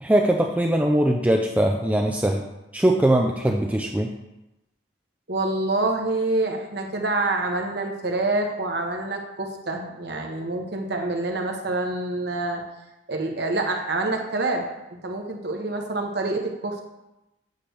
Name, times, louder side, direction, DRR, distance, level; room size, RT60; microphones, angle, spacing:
voice 1, 0.0-2.4 2.7-4.1, right 1 dB, 10° right, 2 dB, 0.4 m, -21 dB
voice 2, 5.3-12.6 13.1-14.7 15.0-16.8, right 2 dB, 60° right, 2 dB, 1.1 m, -26 dB
8.6 x 3.3 x 6.3 m, 0.95 s
head